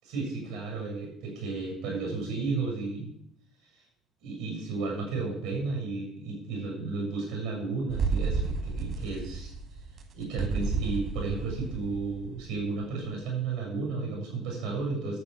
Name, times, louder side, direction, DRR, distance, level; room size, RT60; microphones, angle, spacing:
voice 1, 0.0-3.1 3.7-3.8 4.2-9.5 10.1-15.2, right 3 dB, 70° right, -1 dB, 6.9 m, -33 dB
sound 1, 7.9-12.7, right 4 dB, 45° right, 2.9 m, -31 dB
12.0 x 7.7 x 7.1 m, 0.70 s
figure-of-eight pair, 55°, 0 cm